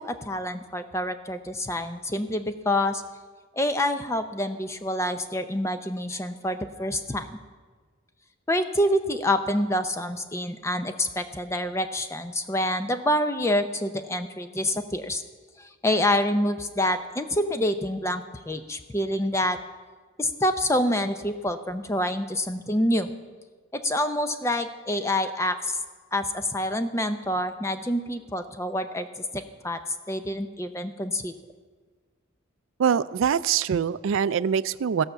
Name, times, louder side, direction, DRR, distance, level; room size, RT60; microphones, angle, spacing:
voice 1, 0.0-3.0 3.5-7.4 8.5-15.2 15.6-19.6 20.2-23.1 23.7-25.8 26.1-29.8 30.1-31.3, left 1 dB, 15° left, 9 dB, 0.5 m, -27 dB
voice 2, 32.8-35.0, right 7 dB, 70° right, 16 dB, 0.3 m, -24 dB
16.5 x 5.7 x 6.7 m, 1.4 s
head